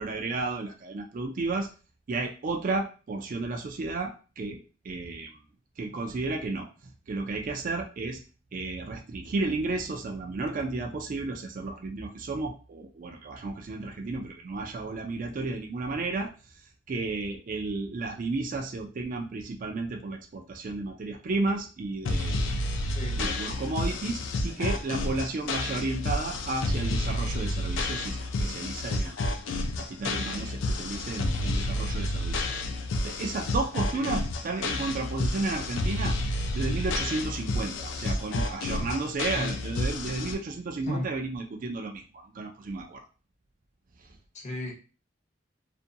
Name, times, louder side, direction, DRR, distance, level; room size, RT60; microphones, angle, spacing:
voice 1, 0.0-1.7 2.1-5.4 5.8-8.2 8.5-16.3 16.9-22.4 22.8-29.3 29.8-32.5 33.0-43.0 44.0-44.2, right 3 dB, 45° right, 3 dB, 0.4 m, -33 dB
sound 1, 22.1-40.3, left 2 dB, 85° left, 0.4 m, -30 dB
voice 2, 44.3-44.7, left 1 dB, 40° left, 0 dB, 0.6 m, -34 dB
2.5 x 2.2 x 2.6 m, 0.35 s
head